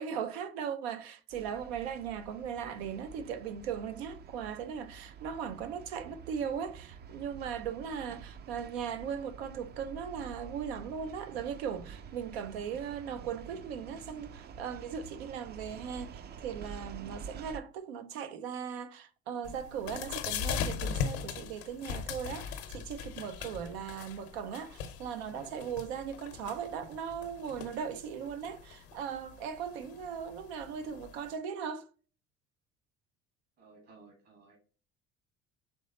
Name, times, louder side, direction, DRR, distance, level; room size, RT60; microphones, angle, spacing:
voice 1, 0.0-31.9, right 7 dB, 90° right, 0.5 m, -38 dB
sound 1, 1.3-17.6, right 6 dB, 35° right, 0.4 m, -48 dB
sound 2, 19.4-31.3, left 7 dB, 80° left, 0.8 m, -40 dB
voice 2, 33.6-34.6, right 4 dB, 55° right, 1.6 m, -57 dB
4.4 x 3.2 x 2.8 m
supercardioid pair, 75°, 30 cm